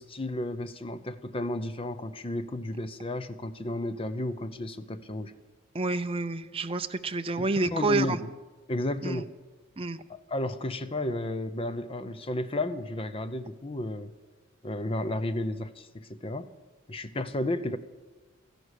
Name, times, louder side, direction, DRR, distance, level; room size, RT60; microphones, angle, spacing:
voice 1, 0.0-5.3 7.4-8.3 8.7-9.3 10.1-14.1 14.6-16.5 16.9-17.8, left 1 dB, 25° left, 12 dB, 0.7 m, -33 dB
voice 2, 5.7-8.2 9.0-9.2 9.8-10.0, right 3 dB, 25° right, 9 dB, 0.6 m, -29 dB
14.0 x 11.0 x 8.3 m, 1.2 s
head